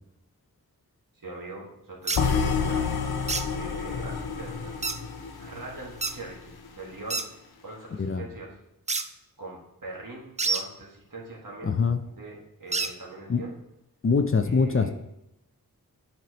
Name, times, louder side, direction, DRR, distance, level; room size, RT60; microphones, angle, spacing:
voice 1, 1.2-2.9 3.5-4.8 5.4-7.3 7.6-8.5 9.0-9.1 9.4-11.7 12.0-13.5 14.4-14.9, right 2 dB, 60° right, -3 dB, 1.9 m, -41 dB
sound 1, 2.1-2.2 3.3-3.5 4.8-5.0 6.0-6.2 7.1-7.3 8.9-9.1 10.4-10.6 12.7-12.9, right 4 dB, 20° right, 0.4 m, -27 dB
sound 2, 2.2-6.3, left 5 dB, 85° left, 0.6 m, -29 dB
voice 2, 11.6-12.0 13.3-13.4 14.0-14.9, left 5 dB, 40° left, 9 dB, 0.5 m, -23 dB
9.0 x 4.4 x 3.0 m, 0.87 s
wide cardioid pair, 60°, 36 cm